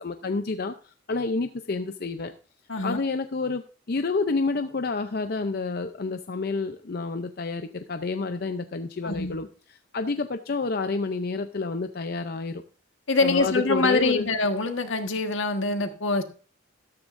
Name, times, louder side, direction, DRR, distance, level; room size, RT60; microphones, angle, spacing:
voice 1, 0.0-2.3 2.8-9.5 9.9-12.6 13.2-14.3, left 3 dB, 50° left, 8 dB, 0.6 m, -29 dB
voice 2, 2.7-3.0 9.0-9.4 13.1-16.2, left 3 dB, 75° left, 6 dB, 1.5 m, -24 dB
13.5 x 13.0 x 2.6 m, 0.36 s
head